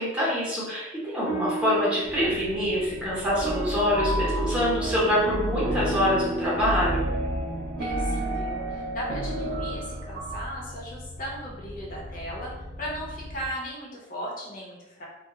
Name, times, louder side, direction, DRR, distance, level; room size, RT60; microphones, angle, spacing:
voice 1, 0.0-7.1, equal, 5° right, -8 dB, 0.8 m, -25 dB
sound 1, 1.3-9.9, right 2 dB, 15° left, 0.5 m, -37 dB
sound 2, 2.0-13.5, left 1 dB, 85° left, 1.0 m, -42 dB
sound 3, 3.2-10.5, right 1 dB, 55° right, 0.3 m, -30 dB
voice 2, 7.8-12.5 12.8-15.0, equal, 45° left, -4 dB, 0.7 m, -37 dB
2.2 x 2.1 x 2.9 m, 1.0 s
head